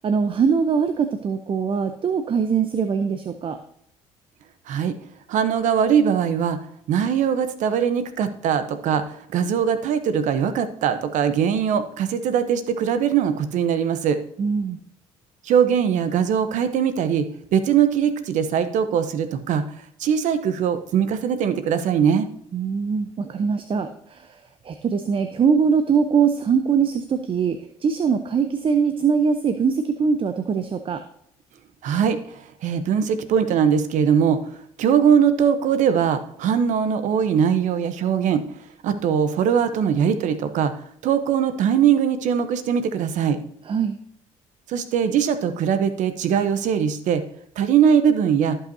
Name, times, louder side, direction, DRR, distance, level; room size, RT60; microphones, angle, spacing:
voice 1, 0.0-3.6 14.4-14.8 22.5-24.4 24.6-31.0 43.7-44.0, right 6 dB, 40° right, 9 dB, 0.7 m, -22 dB
voice 2, 4.7-5.0 5.3-6.6 6.9-14.2 15.4-19.6 20.0-22.3 31.8-34.4 34.8-38.4 38.8-40.7 41.0-43.4 44.7-47.2 47.6-48.6, right 8 dB, 70° right, 10 dB, 0.9 m, -21 dB
16.0 x 5.6 x 2.7 m, 0.70 s
supercardioid pair, 70°, 13 cm